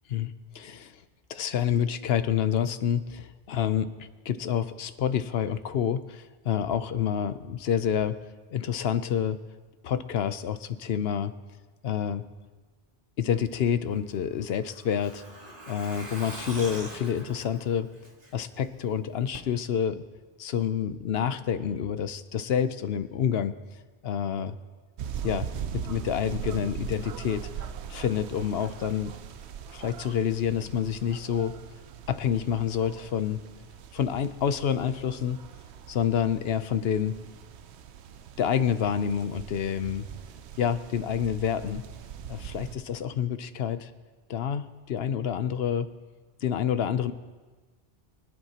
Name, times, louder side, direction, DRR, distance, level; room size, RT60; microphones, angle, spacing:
voice 1, 0.1-1.0 1.3-3.9 4.3-8.2 8.5-9.4 9.8-11.3 11.8-12.2 13.2-15.2 15.7-17.9 18.3-20.0 20.4-23.5 24.0-24.6 25.2-25.5 25.7-27.5 27.9-29.1 29.7-31.6 32.1-33.4 33.9-35.4 35.9-37.2 38.4-40.1 40.6-41.8 42.3-43.9 44.3-45.9 46.4-47.1, left 8 dB, 70° left, 12 dB, 0.9 m, -28 dB
Truck, 13.9-18.6 18.9-19.0 19.3-19.4, right 1 dB, 40° right, 1.7 m, -43 dB
sound 1, 25.0-42.8, right 8 dB, 80° right, 0.9 m, -41 dB
24.0 x 11.0 x 2.9 m, 1.3 s
omnidirectional pair, 1.1 m